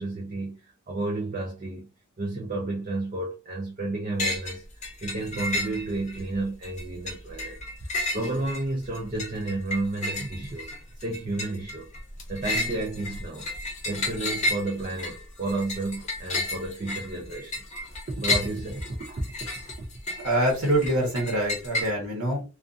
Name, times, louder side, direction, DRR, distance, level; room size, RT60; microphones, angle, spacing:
voice 1, 0.0-1.9 2.2-4.6 5.0-7.6 8.1-10.7 11.0-11.9 12.3-13.5 13.8-17.6 18.1-19.3 19.7-19.9 20.2-20.3, right 2 dB, 35° right, 0.5 m, -31 dB
sound 1, 4.2-4.6 4.8-6.2 6.6-21.9, left 2 dB, 30° left, 0.7 m, -32 dB
voice 2, 20.2-22.4, right 1 dB, 80° right, 1.1 m, -25 dB
2.5 x 2.4 x 2.5 m
head